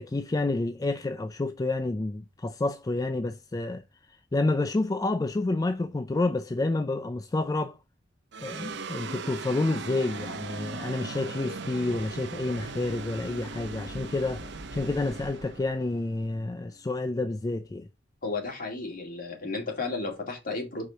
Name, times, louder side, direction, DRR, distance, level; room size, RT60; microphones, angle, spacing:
voice 1, 0.0-7.8 8.4-17.9, left 2 dB, 20° left, 0.3 m, -29 dB
sound 1, 8.3-16.9, right 3 dB, 65° right, 0.7 m, -39 dB
voice 2, 18.2-20.9, left 3 dB, 50° left, 2.2 m, -33 dB
4.8 x 4.0 x 5.7 m
head